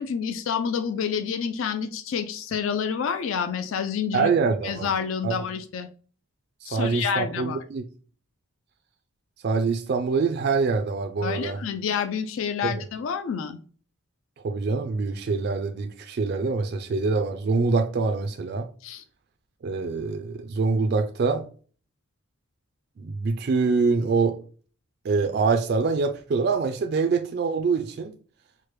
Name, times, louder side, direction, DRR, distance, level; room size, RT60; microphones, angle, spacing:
voice 1, 0.0-4.3 4.6-5.9 6.6-7.6 11.2-13.6 18.8-19.0, left 7 dB, 70° left, 0.4 m, -28 dB
voice 2, 4.1-4.9 5.2-5.4 6.6-7.8 9.4-11.6 12.6-12.8 14.4-18.7 19.6-21.5 23.0-24.4 25.0-28.1, right 4 dB, 50° right, 0.3 m, -25 dB
4.6 x 2.1 x 3.0 m
head